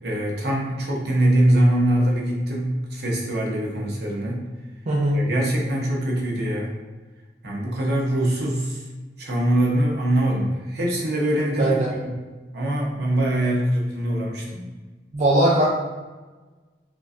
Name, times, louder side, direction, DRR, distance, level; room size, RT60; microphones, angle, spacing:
voice 1, 0.0-4.4 5.1-6.7 7.4-8.8 9.2-11.8 12.5-14.6, right 1 dB, 65° right, -2 dB, 0.9 m, -23 dB
voice 2, 4.9-5.2 11.6-11.9 15.1-15.7, right 1 dB, 40° right, -5 dB, 0.5 m, -19 dB
5.1 x 2.3 x 2.5 m, 1.3 s
head